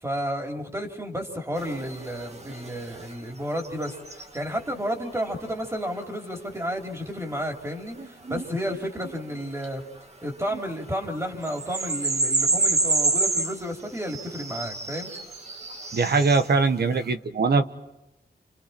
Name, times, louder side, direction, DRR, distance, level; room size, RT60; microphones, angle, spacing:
voice 1, 0.0-9.8 10.2-15.1, equal, 15° right, 2 dB, 3.6 m, -32 dB
sound 1, 1.6-3.1 3.5-4.4 8.0-9.6 10.4-10.6 11.0-11.1 11.4-16.5, right 3 dB, 40° right, 1.9 m, -28 dB
voice 2, 15.9-17.8, right 4 dB, 70° right, 8 dB, 1.6 m, -22 dB
30.0 x 29.0 x 4.4 m, 0.93 s
wide cardioid pair, 115°, 17 cm